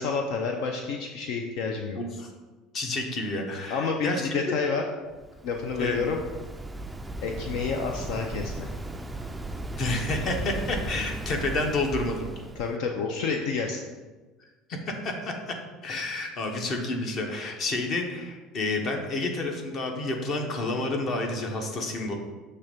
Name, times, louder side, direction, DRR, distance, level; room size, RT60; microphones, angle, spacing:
voice 1, 0.0-2.0 3.7-4.8 5.4-6.2 7.2-8.7 12.6-13.8, left 5 dB, 70° left, 3 dB, 0.6 m, -29 dB
voice 2, 2.0-2.3 2.7-4.6 5.8-6.0 9.8-12.3 14.7-15.3 15.8-22.1, left 2 dB, 40° left, 3 dB, 1.0 m, -29 dB
Waves surf, 5.1-12.8, right 2 dB, 5° right, 0.3 m, -36 dB
6.9 x 3.3 x 5.1 m, 1.3 s
supercardioid pair, 130°, 0 cm